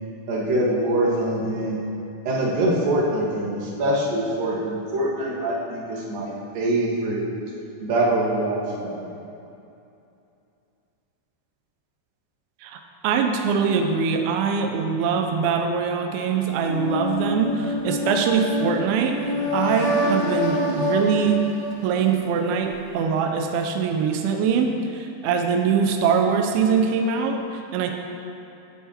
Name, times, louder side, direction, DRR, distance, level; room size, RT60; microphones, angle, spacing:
voice 1, 0.3-1.8 2.3-7.2 7.8-9.1, right 1 dB, 60° right, -4 dB, 2.8 m, -24 dB
voice 2, 12.6-21.4 21.8-27.9, right 6 dB, 85° right, 4 dB, 2.2 m, -23 dB
sound 1, 16.6-22.5, equal, 85° left, 4.2 m, -26 dB
15.0 x 8.4 x 2.9 m, 2.7 s
omnidirectional pair, 5.0 m